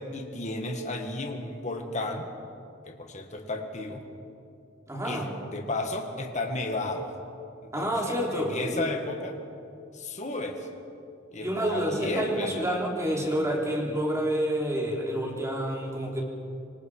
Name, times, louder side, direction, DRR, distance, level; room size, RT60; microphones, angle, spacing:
voice 1, 0.0-2.3 2.9-4.0 5.0-7.1 7.6-9.4 9.9-10.7 11.3-12.9, left 2 dB, 35° left, 3 dB, 2.0 m, -33 dB
voice 2, 4.9-5.3 7.7-8.9 11.4-16.2, equal, 15° right, -1 dB, 3.6 m, -28 dB
26.0 x 25.0 x 5.0 m, 2.6 s
head